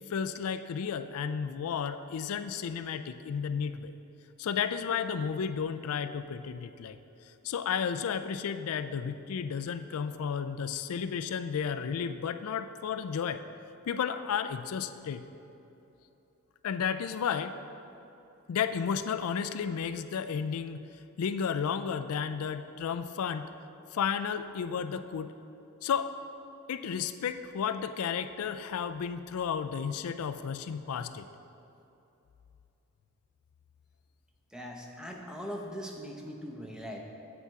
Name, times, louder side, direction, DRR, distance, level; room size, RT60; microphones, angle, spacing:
voice 1, 0.1-3.9 4.4-7.0 7.4-13.4 13.9-15.3 16.6-17.5 18.5-20.8 21.2-23.4 23.9-25.3 25.8-26.1 26.7-31.3, left 7 dB, 85° left, 10 dB, 0.4 m, -32 dB
voice 2, 34.5-37.0, equal, 5° right, 1 dB, 0.7 m, -40 dB
8.1 x 7.4 x 4.7 m, 2.9 s
head